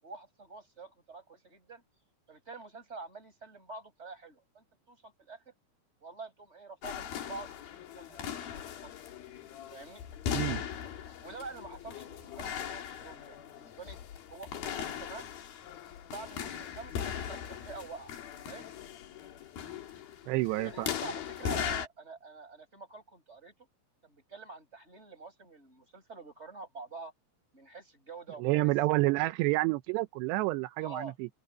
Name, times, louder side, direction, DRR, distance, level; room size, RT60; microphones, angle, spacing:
voice 1, 0.0-1.8 2.3-5.4 6.0-8.3 8.6-8.9 9.7-10.0 11.2-14.0 14.3-15.3 16.0-18.1 18.5-18.7 20.6-23.5 24.0-27.1 27.5-28.5 30.8-31.1, right 3 dB, 15° right, 6.3 m, -47 dB
sound 1, 6.8-21.9, left 9 dB, 65° left, 3.8 m, -39 dB
voice 2, 10.3-10.6 20.3-20.9 28.4-31.3, right 19 dB, 85° right, 2.9 m, -29 dB
open air
omnidirectional pair, 4.8 m